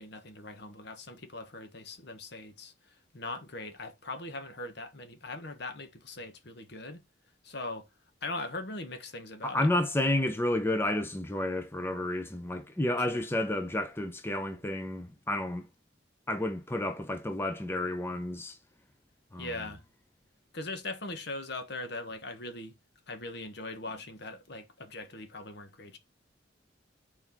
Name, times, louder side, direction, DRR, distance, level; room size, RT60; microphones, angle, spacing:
voice 1, 0.0-7.0 7.4-7.9 8.2-9.7 13.0-13.3 19.4-19.8 20.5-22.7 23.1-26.0, left 2 dB, 55° left, 1.2 m, -40 dB
voice 2, 9.4-15.7 16.3-18.6 19.3-19.5, left 1 dB, 10° left, 0.7 m, -31 dB
6.1 x 4.6 x 4.5 m
head